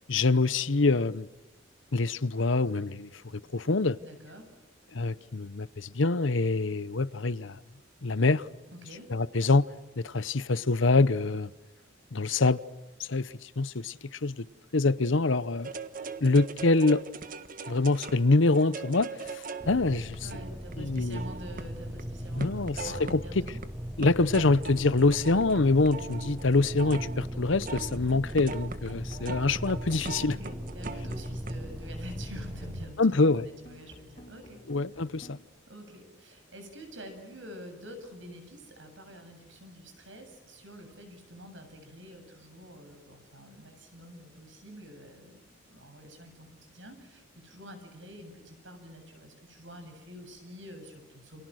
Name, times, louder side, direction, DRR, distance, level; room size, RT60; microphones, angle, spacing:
voice 1, 0.1-1.3 1.9-4.0 4.9-7.6 8.0-8.5 9.1-9.7 10.0-11.5 12.1-12.6 13.0-14.5 14.7-15.7 16.2-17.0 17.7-20.2 20.8-21.2 22.4-23.2 24.0-30.4 33.0-33.5 34.7-35.4, left 3 dB, 70° left, 0.9 m, -25 dB
voice 2, 4.0-4.5 8.7-9.1 20.2-23.6 30.2-34.6 35.7-51.4, equal, 70° right, 7.7 m, -47 dB
sound 1, 15.6-22.0 22.4-23.7 24.0-31.5, right 4 dB, 45° right, 1.5 m, -41 dB
sound 2, 19.6-32.9, equal, 10° right, 1.6 m, -38 dB
sound 3, 29.0-35.4, equal, 30° left, 4.0 m, -51 dB
29.5 x 28.0 x 6.5 m
head